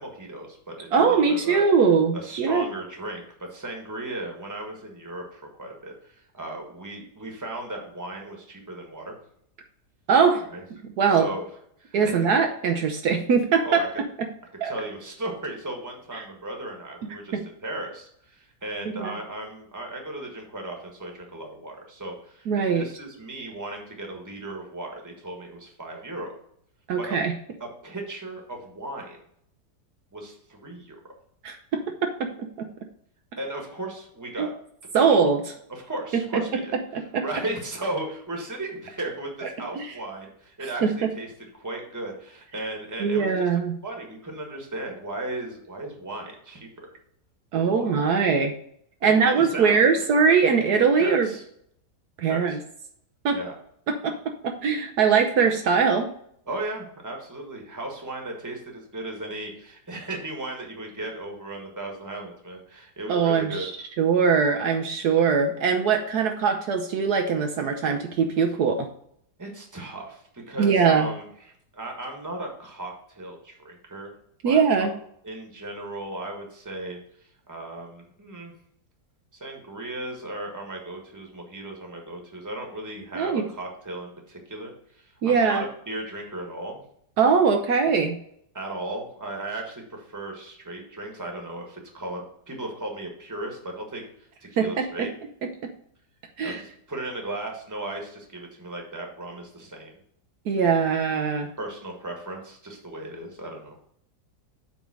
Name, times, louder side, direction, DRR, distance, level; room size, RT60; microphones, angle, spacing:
voice 1, 0.0-1.6 2.1-3.2 3.5-9.2 10.4-10.6 11.1-11.4 11.8-12.3 13.6-13.9 14.6-26.3 27.0-27.2 27.6-29.2 30.1-31.0 33.4-34.5 34.9-35.0 35.7-36.7 37.2-43.5 43.8-46.9 47.5-48.2 49.0-49.8 51.0-51.4 52.3-52.6 53.3-53.6 56.5-63.7 69.4-71.2 71.7-74.1 74.4-74.9 75.2-77.0 77.5-78.5 79.3-86.8 88.5-94.0 94.4-95.1 96.4-100.0 101.6-103.8, right 1 dB, 10° right, 1 dB, 1.3 m, -36 dB
voice 2, 0.9-2.6 10.1-10.4 10.8-11.3 11.9-13.8 14.2-14.3 14.6-14.7 16.1-16.2 17.3-17.4 18.9-19.1 22.5-22.9 26.9-27.3 31.4-31.8 32.2-32.7 34.4-34.5 34.9-35.5 36.1-36.4 36.9-37.2 39.8-39.9 40.8-41.1 43.0-43.7 47.5-48.5 49.0-51.3 52.2-52.6 53.2-53.4 53.9-56.1 63.1-63.7 64.0-68.9 70.6-71.1 74.4-74.9 83.1-83.4 85.2-85.6 87.2-88.2 94.6-95.1 95.4-95.7 96.4-96.6 100.5-101.5, right 5 dB, 70° right, 5 dB, 1.2 m, -22 dB
7.9 x 3.6 x 6.2 m, 0.69 s
omnidirectional pair, 1.8 m